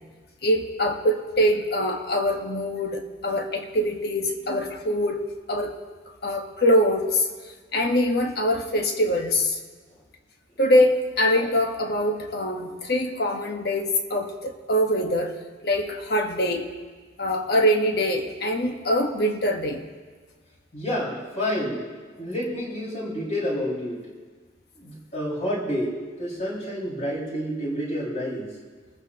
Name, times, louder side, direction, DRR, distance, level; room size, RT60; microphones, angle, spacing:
voice 1, 0.4-5.8 6.2-7.3 7.7-9.6 10.6-15.3 15.6-16.7 17.2-19.8, equal, 55° left, 3 dB, 1.5 m, -23 dB
voice 2, 20.7-21.8 22.1-24.0 24.8-28.5, equal, 40° left, -5 dB, 5.7 m, -29 dB
29.5 x 14.5 x 3.0 m, 1.4 s
head